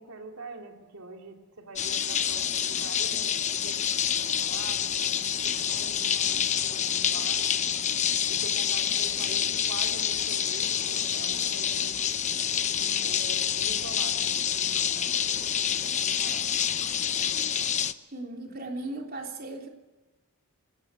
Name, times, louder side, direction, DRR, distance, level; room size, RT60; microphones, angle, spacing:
voice 1, 0.0-7.6 8.3-12.0 12.7-16.8, right 2 dB, 90° right, 3 dB, 2.9 m, -44 dB
sound 1, 1.8-17.9, left 9 dB, 35° left, 0.8 m, -27 dB
voice 2, 18.1-19.7, right 2 dB, 45° right, 2 dB, 3.6 m, -37 dB
26.0 x 18.5 x 8.4 m, 1.1 s
head